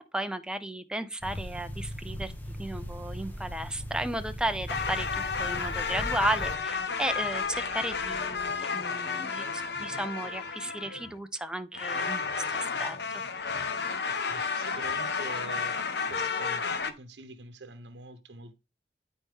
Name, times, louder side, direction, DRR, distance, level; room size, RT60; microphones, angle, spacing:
voice 1, 0.1-2.3 2.6-13.2, right 1 dB, 5° right, 0.6 m, -34 dB
sound 1, 1.2-6.6, equal, 10° left, 1.2 m, -39 dB
sound 2, 2.6-8.5, equal, 20° right, 2.8 m, -53 dB
sound 3, 4.7-11.2 11.7-16.9, left 5 dB, 70° left, 1.0 m, -32 dB
voice 2, 14.3-15.8 16.1-18.6, right 2 dB, 75° right, 0.9 m, -45 dB
12.5 x 4.2 x 3.7 m
head